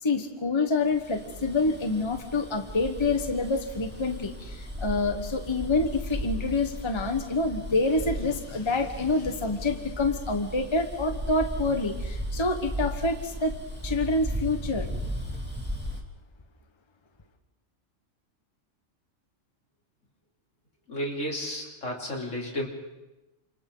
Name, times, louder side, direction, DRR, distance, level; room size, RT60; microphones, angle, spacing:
voice 1, 0.0-13.5 13.8-14.9, left 3 dB, 20° left, 6 dB, 1.3 m, -27 dB
Bus, 0.9-16.0, equal, 10° right, 2.6 m, -36 dB
voice 2, 20.9-22.7, equal, 70° left, -1 dB, 4.0 m, -32 dB
30.0 x 27.5 x 4.0 m, 1.0 s
omnidirectional pair, 1.3 m